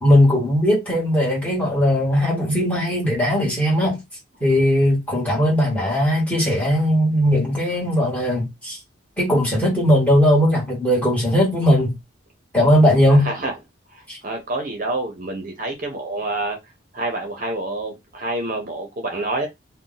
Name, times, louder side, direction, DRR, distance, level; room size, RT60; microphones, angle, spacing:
voice 1, 0.0-4.0 4.4-8.8 9.2-11.9 12.5-13.3 14.1-14.2, equal, 5° left, 1.4 m, -18 dB
voice 2, 13.0-13.5 13.9-16.6 16.9-19.5, right 2 dB, 45° right, 0.7 m, -27 dB
2.6 x 2.1 x 3.9 m
head